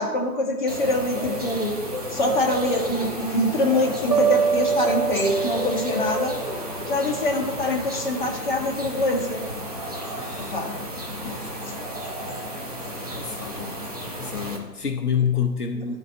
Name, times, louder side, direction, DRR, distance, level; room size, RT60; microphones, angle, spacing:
voice 1, 0.0-1.7 2.1-6.3 6.9-9.4 10.5-10.7 11.2-11.4, left 1 dB, 30° left, -1 dB, 1.1 m, -24 dB
sound 1, 0.7-14.6, equal, 25° right, 0.7 m, -32 dB
sound 2, 4.1-7.2, right 6 dB, 75° right, 1.2 m, -25 dB
voice 2, 10.2-10.6 11.4-11.5 13.2-13.8 14.2-16.0, left 7 dB, 65° left, 4 dB, 0.8 m, -27 dB
11.0 x 4.2 x 4.4 m, 1.3 s
figure-of-eight pair, 140°, 49 cm